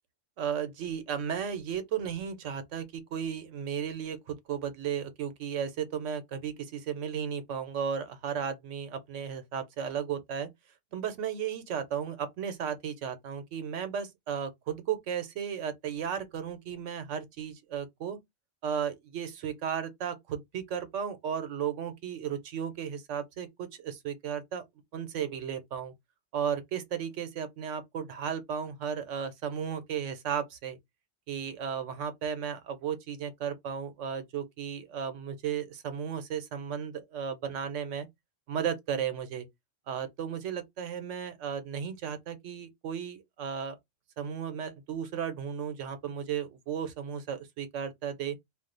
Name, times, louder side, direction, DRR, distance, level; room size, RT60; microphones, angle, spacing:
voice 1, 0.4-10.5 10.9-18.2 18.6-24.6 24.9-25.9 26.3-30.8 31.3-38.1 38.5-39.5 39.9-43.8 44.2-48.4, right 8 dB, 85° right, 1.0 m, -34 dB
2.4 x 2.3 x 3.7 m
omnidirectional pair, 1.2 m